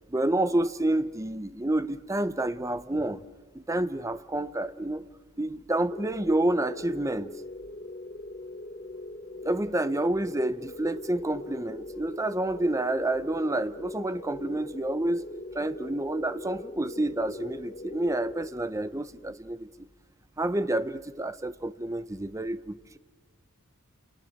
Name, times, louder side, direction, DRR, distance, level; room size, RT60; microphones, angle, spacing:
voice 1, 0.1-3.2 3.5-5.1 5.4-7.3 9.4-15.2 15.5-19.7 20.4-23.0, right 1 dB, 15° right, 0.7 m, -29 dB
sound 1, 5.9-19.0, left 2 dB, 35° left, 0.7 m, -41 dB
29.5 x 27.5 x 6.5 m
head